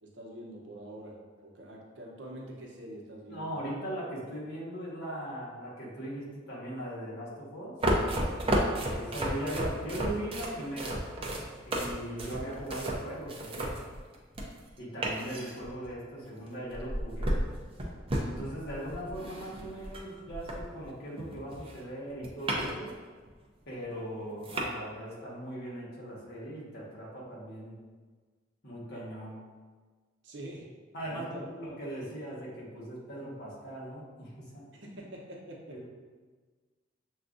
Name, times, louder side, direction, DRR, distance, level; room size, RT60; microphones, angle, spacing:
voice 1, 0.0-3.5 30.2-30.7 31.0-31.5 34.7-35.9, right 1 dB, 65° right, -2 dB, 0.8 m, -45 dB
voice 2, 3.3-7.8 8.9-11.0 11.6-13.8 14.8-17.4 18.2-22.9 23.7-27.8 28.6-29.4 30.9-34.7 35.7-35.9, right 1 dB, 60° left, -6 dB, 1.3 m, -39 dB
sound 1, 7.8-14.7 15.0-16.0 16.7-20.9 21.2-22.9 23.3-23.4 24.0-24.1 24.4-24.7, right 1 dB, 30° right, 0.5 m, -33 dB
6.8 x 2.3 x 2.5 m, 1.4 s
head